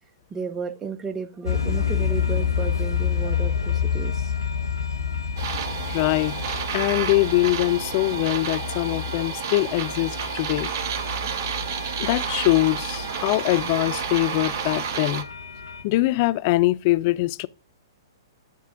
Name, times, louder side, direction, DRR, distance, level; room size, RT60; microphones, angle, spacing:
voice 1, 0.3-4.3, right 5 dB, 15° right, 0.7 m, -33 dB
sound 1, 1.5-15.8, left 7 dB, 80° left, 0.8 m, -29 dB
sound 2, 5.4-15.2, right 7 dB, 50° right, 0.7 m, -31 dB
voice 2, 5.9-6.3 6.7-10.7 12.0-15.2 15.8-17.5, left 19 dB, 40° left, 0.3 m, -23 dB
9.1 x 3.5 x 3.6 m
figure-of-eight pair, 110°, 2 cm